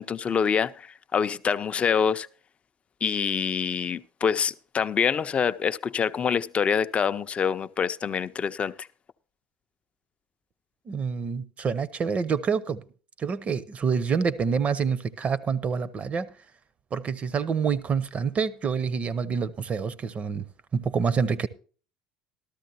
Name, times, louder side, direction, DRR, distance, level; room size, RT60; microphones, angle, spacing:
voice 1, 0.0-2.3 3.0-8.9, left 7 dB, 30° left, 0.5 m, -26 dB
voice 2, 10.9-12.8 13.2-16.3 16.9-20.4 20.7-21.5, right 6 dB, 35° right, 0.7 m, -27 dB
13.5 x 13.0 x 2.8 m
hypercardioid pair, 70°, 4 cm